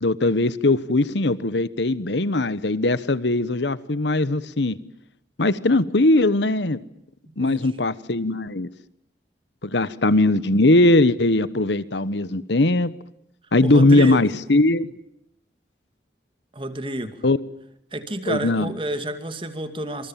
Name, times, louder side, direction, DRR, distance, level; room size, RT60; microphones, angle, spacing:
voice 1, 0.0-4.8 5.4-6.8 7.4-8.7 9.6-12.9 13.5-14.9 17.2-17.4 18.3-18.7, left 2 dB, 80° left, 16 dB, 1.2 m, -20 dB
voice 2, 7.3-7.8 13.6-14.2 16.5-17.2 17.9-20.1, right 1 dB, 30° right, 9 dB, 2.4 m, -30 dB
27.0 x 27.0 x 7.5 m, 0.78 s
head